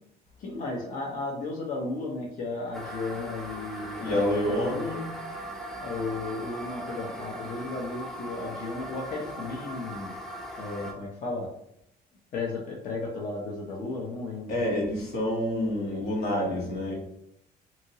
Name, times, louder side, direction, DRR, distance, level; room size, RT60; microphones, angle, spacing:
voice 1, 0.4-4.1 4.5-5.1 5.8-10.1 10.6-11.5 12.3-14.5, left 3 dB, 50° left, -2 dB, 0.6 m, -34 dB
sound 1, 2.7-10.9, right 1 dB, ahead, 0.5 m, -39 dB
voice 2, 3.9-5.1 14.5-17.0, left 1 dB, 75° left, -2 dB, 1.2 m, -28 dB
2.8 x 2.7 x 2.7 m, 0.76 s
cardioid pair, 110°, 17 cm